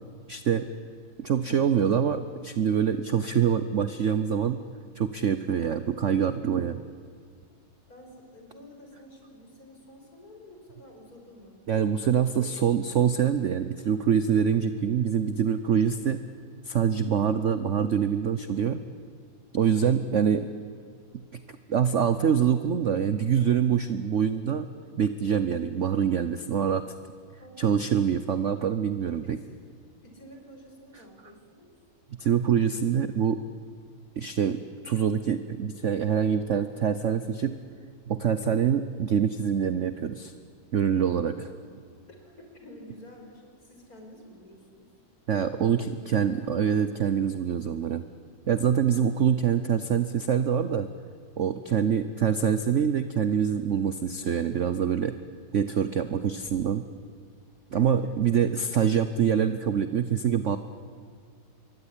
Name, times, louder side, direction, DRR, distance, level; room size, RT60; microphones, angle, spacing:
voice 1, 0.3-0.7 1.2-4.6 5.0-6.8 11.7-16.3 16.6-18.8 19.5-20.4 21.3-21.4 21.7-24.7 25.0-26.8 27.6-29.4 32.2-33.4 34.2-37.6 38.1-40.3 40.7-41.5 45.3-48.0 48.5-50.9 51.4-55.2 55.5-56.8 57.7-60.6, right 8 dB, 55° right, 11 dB, 0.9 m, -25 dB
voice 2, 7.9-11.6 12.3-13.1 17.2-17.6 20.0-20.7 27.4-27.6 29.2-29.4 30.0-31.7 36.5-36.9 41.5-41.8 42.1-44.9 45.5-46.7 48.9-49.3 51.8-52.2 57.7-58.5, equal, 45° left, 2 dB, 5.6 m, -50 dB
25.5 x 22.5 x 9.9 m, 2.1 s
omnidirectional pair, 2.1 m